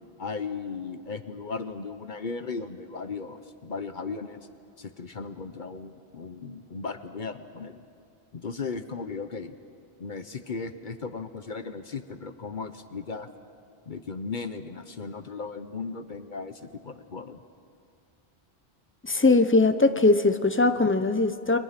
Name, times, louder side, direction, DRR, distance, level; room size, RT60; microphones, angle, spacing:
voice 1, 0.2-4.4 4.8-7.8 8.3-9.5 10.0-13.3 13.9-17.4, left 4 dB, 50° left, 10 dB, 1.0 m, -36 dB
voice 2, 19.0-21.6, left 3 dB, 15° left, 10 dB, 0.8 m, -21 dB
29.5 x 22.5 x 5.9 m, 2.4 s
omnidirectional pair, 1.1 m